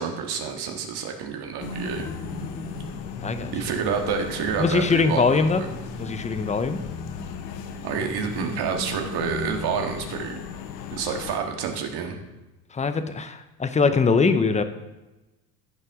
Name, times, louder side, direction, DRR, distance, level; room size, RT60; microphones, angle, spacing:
voice 1, 0.0-2.1 3.5-5.7 7.8-10.4 10.9-12.2, right 6 dB, 50° right, 4 dB, 1.8 m, -28 dB
sound 1, 1.6-11.4, left 9 dB, 80° left, 1.0 m, -38 dB
sound 2, 1.6-12.2, left 2 dB, 35° left, 2.6 m, -39 dB
voice 2, 3.2-3.5 4.6-5.6 6.0-6.8 12.7-14.6, left 4 dB, 15° left, 10 dB, 0.8 m, -22 dB
14.5 x 5.5 x 3.7 m, 1.0 s
hypercardioid pair, 80°, 49 cm